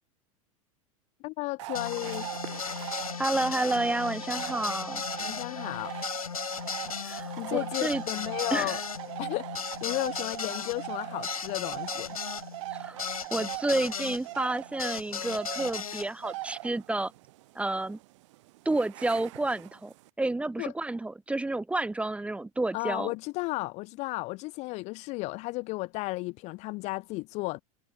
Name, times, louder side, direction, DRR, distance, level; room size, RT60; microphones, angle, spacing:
voice 1, 1.2-2.3 5.2-5.9 7.4-8.8 9.2-12.2 20.6-20.7 22.7-27.6, left 23 dB, 40° left, 0.5 m, -34 dB
sound 1, 1.6-20.1, right 20 dB, 55° right, 2.1 m, -41 dB
sound 2, 1.7-14.2 14.8-16.1, left 7 dB, 80° left, 1.1 m, -36 dB
voice 2, 3.2-5.0 7.0-8.0 8.5-8.8 12.7-13.0 13.3-17.1 17.6-18.0 18.7-23.1, right 2 dB, 5° right, 0.7 m, -30 dB
figure-of-eight pair, 85°, 18 cm